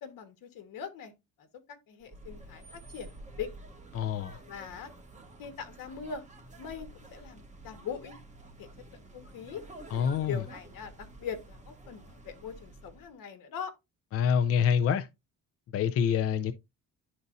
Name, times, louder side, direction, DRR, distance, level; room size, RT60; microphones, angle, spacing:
voice 1, 0.0-1.1 1.4-3.5 4.5-4.9 5.4-6.2 6.6-8.2 8.6-9.6 10.2-13.7, left 7 dB, 65° left, 1.5 m, -41 dB
sound 1, 2.0-13.1, right 2 dB, 20° right, 1.6 m, -50 dB
voice 2, 3.9-4.4 9.9-10.4 14.1-15.1 15.7-16.5, left 7 dB, 45° left, 0.5 m, -26 dB
11.5 x 4.1 x 2.6 m
cardioid pair, 135°, 35 cm